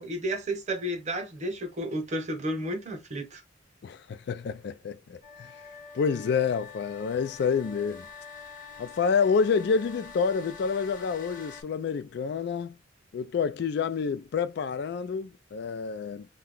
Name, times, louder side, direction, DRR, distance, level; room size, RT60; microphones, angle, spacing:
voice 1, 0.0-3.4, right 1 dB, 40° right, 0.8 m, -32 dB
voice 2, 3.8-5.5 5.9-8.1 8.8-12.8 13.1-16.3, left 5 dB, 60° left, 0.3 m, -28 dB
sound 1, 5.2-11.6, left 5 dB, 45° left, 0.9 m, -46 dB
2.7 x 2.2 x 3.7 m
head